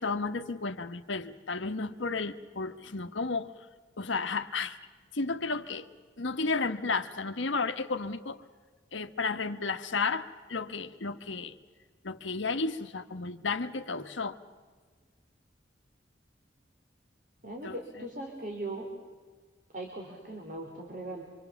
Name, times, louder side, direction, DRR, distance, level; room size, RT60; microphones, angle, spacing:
voice 1, 0.0-3.5 4.0-4.8 5.1-5.9 6.2-8.4 8.9-11.5 12.0-14.4 17.6-17.8, left 4 dB, 80° left, 9 dB, 1.2 m, -33 dB
voice 2, 17.4-18.9 19.7-21.2, right 1 dB, 40° right, 2 dB, 3.0 m, -39 dB
25.5 x 25.0 x 7.1 m, 1.5 s
head